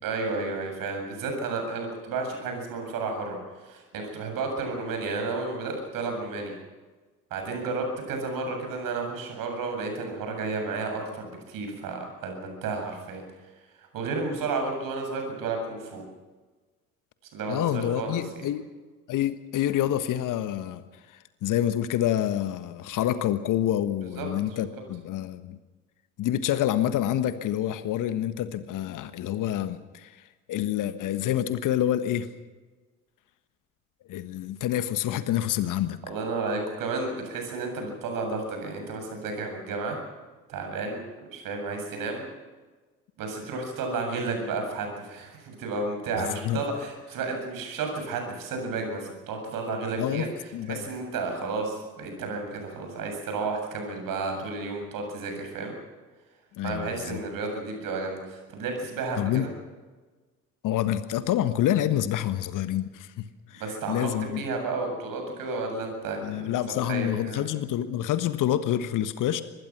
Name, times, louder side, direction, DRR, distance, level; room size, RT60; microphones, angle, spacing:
voice 1, 0.0-6.5 7.3-13.2 13.9-16.0 17.3-18.2 24.2-24.3 36.1-40.0 40.5-42.3 43.2-50.3 50.7-55.7 56.6-59.5 63.5-66.5 66.9-67.4, right 3 dB, 50° right, 4 dB, 7.7 m, -32 dB
voice 2, 17.5-18.7 19.1-25.6 26.2-30.2 30.5-32.3 34.1-36.0 46.2-46.6 50.0-50.9 56.5-57.2 59.2-59.5 60.6-64.4 66.2-69.4, left 11 dB, 45° left, 12 dB, 1.5 m, -27 dB
25.0 x 21.0 x 6.1 m, 1.3 s
figure-of-eight pair, 60°, 42 cm